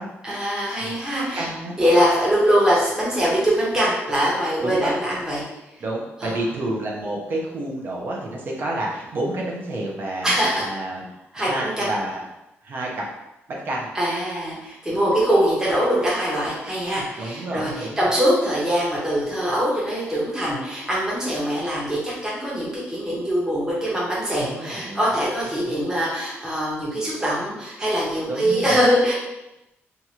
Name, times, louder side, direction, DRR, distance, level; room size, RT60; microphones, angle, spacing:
voice 1, 0.2-1.5 1.8-5.4 6.2-6.3 10.2-10.7 11.3-11.9 13.9-29.1, equal, 15° right, -7 dB, 0.8 m, -22 dB
voice 2, 1.3-1.7 4.6-4.9 5.8-10.3 10.6-11.0 11.4-12.2 12.6-13.1 13.5-13.9 14.9-15.0 17.2-18.1 24.4-25.0 25.5-25.8 28.3-28.8, right 1 dB, 50° right, -2 dB, 0.6 m, -29 dB
2.8 x 2.4 x 2.9 m, 0.92 s
wide cardioid pair, 155°, 5 cm